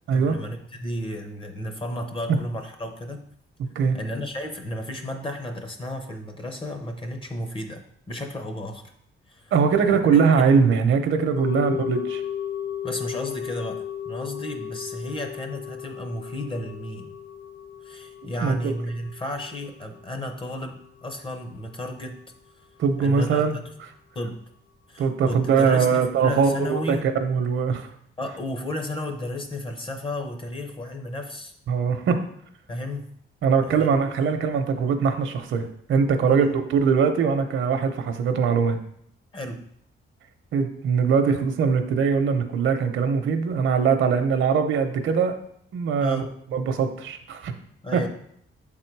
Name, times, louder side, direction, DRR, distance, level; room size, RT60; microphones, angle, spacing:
voice 1, 0.1-3.2 3.9-8.8 9.3-9.5 9.9-10.5 11.5-11.6 12.8-17.1 17.8-22.2 23.0-23.6 24.1-24.4 24.9-27.1 28.2-31.5 32.7-33.1 33.6-33.9 36.3-36.4 39.3-39.6 46.0-46.3 47.8-48.1, left 1 dB, 25° left, 5 dB, 0.7 m, -33 dB
voice 2, 9.5-12.2 18.4-18.7 22.8-23.6 25.0-27.9 31.7-32.2 33.4-38.8 40.5-45.4 45.7-46.2 46.5-47.5 47.9-48.1, right 6 dB, 65° right, 7 dB, 0.7 m, -21 dB
sound 1, 11.4-21.6 21.9-22.0, left 9 dB, 85° left, 1.4 m, -35 dB
7.3 x 3.7 x 4.6 m, 0.69 s
cardioid pair, 155°, 21 cm